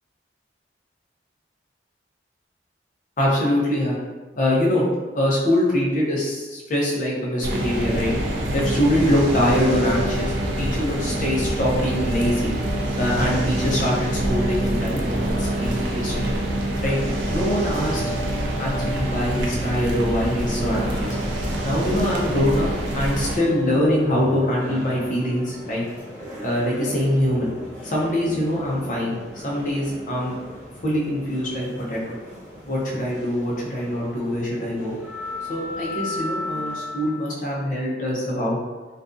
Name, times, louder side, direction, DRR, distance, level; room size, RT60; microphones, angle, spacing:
voice 1, 3.2-3.9 4.4-4.8 5.1-8.1 8.5-12.5 13.0-16.4 16.8-17.0 17.3-18.0 18.6-21.2 21.6-25.8 26.4-27.5 27.8-29.2 29.4-30.4 30.8-32.2 32.7-34.9 35.5-38.6, left 1 dB, 45° left, -4 dB, 0.6 m, -23 dB
sound 1, 7.4-23.4, right 1 dB, 80° right, 0.4 m, -25 dB
sound 2, 20.2-37.3, left 1 dB, 10° left, 1.3 m, -37 dB
2.5 x 2.2 x 2.5 m, 1.3 s
head